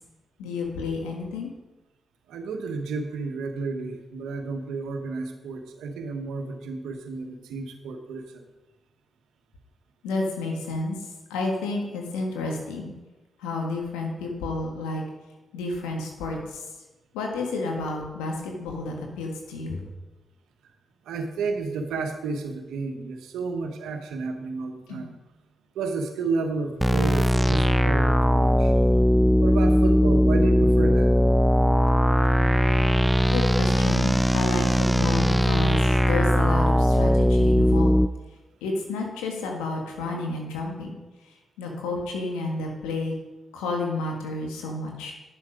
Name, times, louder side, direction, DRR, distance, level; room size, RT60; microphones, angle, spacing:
voice 1, 0.4-1.5 10.0-11.0 11.3-12.9 13.4-15.0 15.5-16.6 17.1-19.8 24.9-25.0 33.3-38.0 38.6-41.0 41.6-43.1 43.5-45.1, left 3 dB, 90° left, 1 dB, 1.8 m, -30 dB
voice 2, 2.3-8.2 21.1-25.1 25.7-28.7 29.4-31.1, right 4 dB, 80° right, 5 dB, 1.2 m, -31 dB
sound 1, 26.8-38.1, equal, 5° right, 0.3 m, -20 dB
9.5 x 7.4 x 5.1 m, 1.1 s
hypercardioid pair, 40°, 0 cm